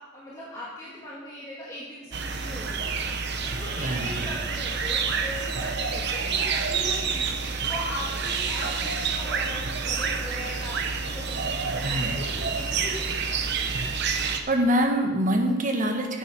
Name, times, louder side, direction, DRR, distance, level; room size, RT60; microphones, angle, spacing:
voice 1, 0.1-13.2 13.6-13.8, equal, 15° left, -8 dB, 2.0 m, -39 dB
sound 1, 2.1-14.4, right 5 dB, 55° right, 0.9 m, -28 dB
voice 2, 3.8-4.3 11.8-12.1 14.2-16.2, equal, 40° right, 3 dB, 1.4 m, -25 dB
9.3 x 8.8 x 6.2 m, 1.2 s
head